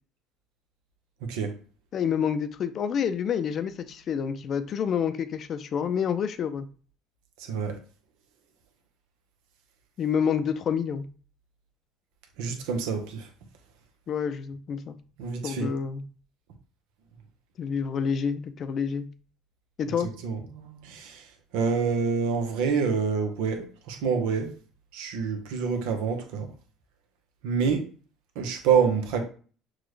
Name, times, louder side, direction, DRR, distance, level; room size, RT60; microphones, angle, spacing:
voice 1, 1.9-6.7 10.0-11.1 14.1-15.0 15.4-16.0 17.6-19.1 19.8-20.1, left 7 dB, 50° left, 10 dB, 0.5 m, -28 dB
voice 2, 7.4-7.8 12.4-13.3 15.2-15.7 20.0-21.3 21.5-24.5 24.9-26.5 27.4-27.8 28.3-29.2, right 6 dB, 80° right, 4 dB, 1.0 m, -27 dB
6.2 x 2.4 x 3.2 m, 0.40 s
supercardioid pair, 90°, 0 cm